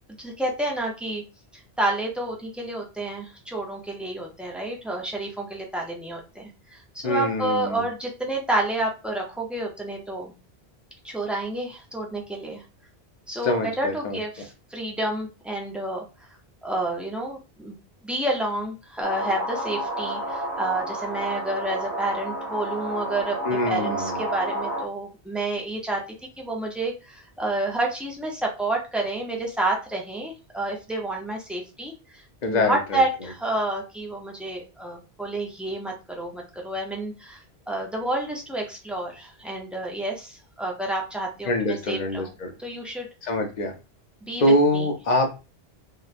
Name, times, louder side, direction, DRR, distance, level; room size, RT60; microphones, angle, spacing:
voice 1, 0.2-1.2 1.5-10.3 11.0-12.6 13.3-16.0 16.6-17.8 18.0-26.0 26.4-42.3 42.6-43.1 44.3-44.4 44.7-44.9, right 2 dB, ahead, -1 dB, 0.3 m, -29 dB
voice 2, 7.0-7.8 13.4-14.2 23.4-24.2 32.4-33.0 41.5-42.5 43.2-43.7 44.4-45.3, left 1 dB, 50° left, 3 dB, 0.7 m, -24 dB
sound 1, 19.0-24.9, right 1 dB, 85° right, 1.1 m, -30 dB
2.9 x 2.2 x 2.4 m, 0.29 s
omnidirectional pair, 1.1 m